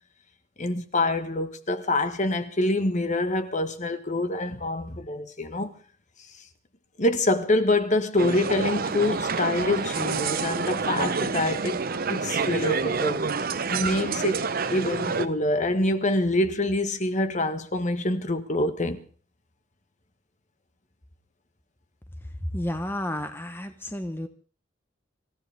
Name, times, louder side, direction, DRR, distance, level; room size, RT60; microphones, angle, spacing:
voice 1, 0.6-5.7 7.0-11.8 12.1-13.2 13.7-19.0, left 2 dB, 40° left, 1.4 m, -26 dB
sound 1, 8.2-15.3, right 4 dB, 50° right, 0.9 m, -28 dB
voice 2, 22.5-24.3, left 1 dB, 10° left, 1.0 m, -31 dB
26.0 x 14.5 x 3.5 m
head